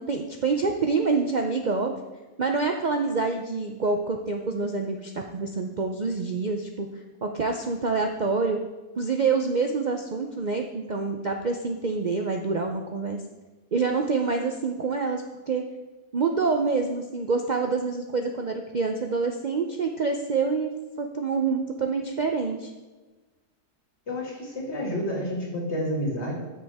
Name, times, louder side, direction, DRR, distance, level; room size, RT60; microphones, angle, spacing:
voice 1, 0.0-1.9 2.4-6.9 7.2-8.6 8.9-13.2 13.7-15.6 16.1-20.7 21.0-22.7, right 4 dB, 75° right, 3 dB, 0.4 m, -26 dB
voice 2, 24.1-26.4, equal, 45° left, -2 dB, 2.6 m, -29 dB
13.0 x 6.6 x 3.5 m, 1.2 s
omnidirectional pair, 1.7 m